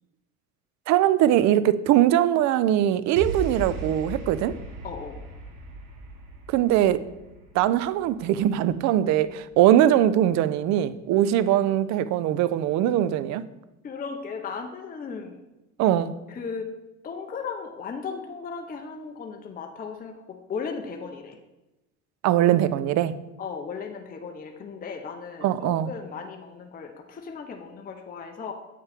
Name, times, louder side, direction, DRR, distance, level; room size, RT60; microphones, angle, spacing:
voice 1, 0.9-4.5 6.5-7.0 7.5-13.4 15.8-16.2 22.2-23.2 25.4-25.9, right 12 dB, 45° right, 15 dB, 0.4 m, -21 dB
sound 1, 3.2-9.6, right 2 dB, 65° right, 1.2 m, -38 dB
voice 2, 4.8-5.2 13.8-15.4 16.3-16.7 17.0-21.4 23.4-28.5, left 5 dB, 20° left, 3 dB, 0.7 m, -36 dB
8.2 x 4.4 x 3.4 m, 1.0 s
hypercardioid pair, 80°, 42 cm